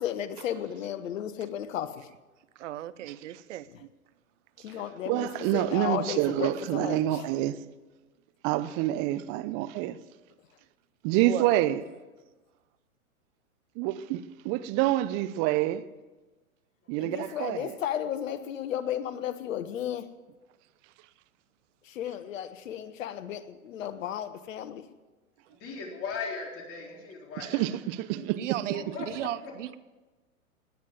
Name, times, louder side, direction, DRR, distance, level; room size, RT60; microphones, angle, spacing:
voice 1, 0.0-2.1 4.6-7.2 17.0-20.1 21.9-24.8, left 10 dB, 65° left, 1.3 m, -34 dB
voice 2, 2.6-3.9 11.2-11.5 28.1-29.8, right 13 dB, 60° right, 0.9 m, -36 dB
voice 3, 5.1-7.5 8.4-10.0 11.0-11.8 13.8-15.8 16.9-17.8 27.4-28.4, right 14 dB, 35° right, 0.7 m, -27 dB
voice 4, 25.6-27.6 28.7-29.1, left 5 dB, 30° left, 4.0 m, -37 dB
18.5 x 9.6 x 7.4 m
hypercardioid pair, 110°, 43 cm